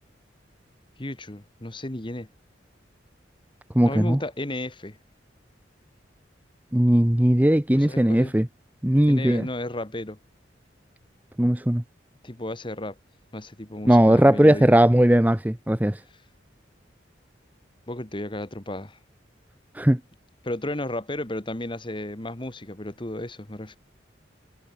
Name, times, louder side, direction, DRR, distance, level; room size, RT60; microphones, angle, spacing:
voice 1, 1.0-2.3 3.8-5.0 7.7-8.3 9.1-10.2 12.2-13.0 13.3-14.8 17.9-19.0 20.4-23.8, left 1 dB, 25° left, 1.6 m, -33 dB
voice 2, 3.7-4.2 6.7-8.5 8.8-9.5 11.4-11.8 13.9-16.0 19.7-20.0, right 1 dB, 10° right, 0.7 m, -18 dB
head